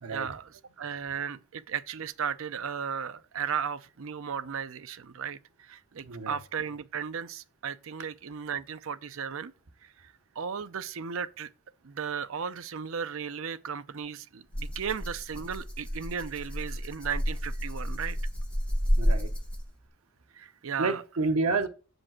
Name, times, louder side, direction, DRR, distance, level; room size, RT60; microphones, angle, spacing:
voice 1, 0.1-9.5 9.8-11.5 11.8-18.2 20.3-21.0, right 7 dB, 65° right, 0.5 m, -35 dB
voice 2, 6.0-6.4 19.0-19.3 20.8-21.7, right 3 dB, 80° right, 0.9 m, -29 dB
Rattle (instrument), 14.5-19.9, equal, 5° left, 1.1 m, -30 dB
7.3 x 5.3 x 7.4 m
head